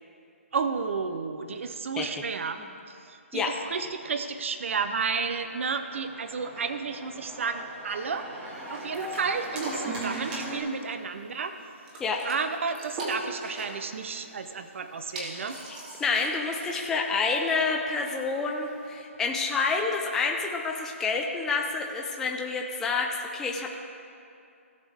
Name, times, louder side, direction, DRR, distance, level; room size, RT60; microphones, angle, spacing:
voice 1, 0.5-2.6 2.9-8.3 8.7-11.5 12.2-15.6, right 5 dB, 60° right, 9 dB, 0.7 m, -32 dB
Organ, 5.0-10.6, right 1 dB, 20° right, 1.7 m, -39 dB
sound 1, 8.5-19.0, right 1 dB, 35° right, 2.5 m, -42 dB
voice 2, 15.7-23.8, left 4 dB, 5° left, 0 dB, 0.4 m, -28 dB
17.0 x 6.4 x 3.6 m, 2.5 s
hypercardioid pair, 160°, 8 cm